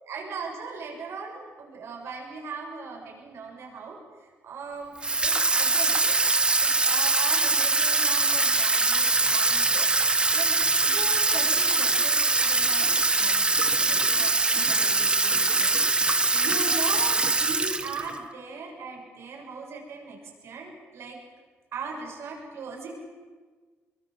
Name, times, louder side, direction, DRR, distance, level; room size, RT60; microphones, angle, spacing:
voice 1, 0.0-4.9 5.2-6.2 6.6-9.9 10.3-10.6 10.8-21.2 21.7-22.9, right 4 dB, 65° right, 0 dB, 7.0 m, -39 dB
Water tap faucet / Sink (filling or washing), 5.0-18.2, right 3 dB, 20° right, 1.2 m, -23 dB
24.0 x 22.0 x 7.8 m, 1.4 s
cardioid pair, 100°, 5 cm